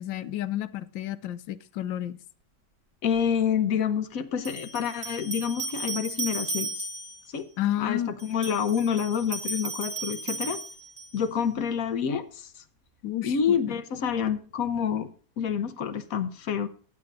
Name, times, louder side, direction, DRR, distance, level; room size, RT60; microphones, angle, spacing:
voice 1, 0.0-2.2 7.6-8.1 13.0-13.7, left 12 dB, 90° left, 1.4 m, -31 dB
voice 2, 3.0-6.9 7.3-7.5 7.8-10.6 11.1-12.5 13.2-15.1 15.4-16.7, left 7 dB, 55° left, 1.2 m, -28 dB
sound 1, 3.2-3.3 4.4-7.3 8.2-11.3, right 2 dB, 20° right, 1.4 m, -35 dB
15.5 x 9.6 x 2.6 m
omnidirectional pair, 2.0 m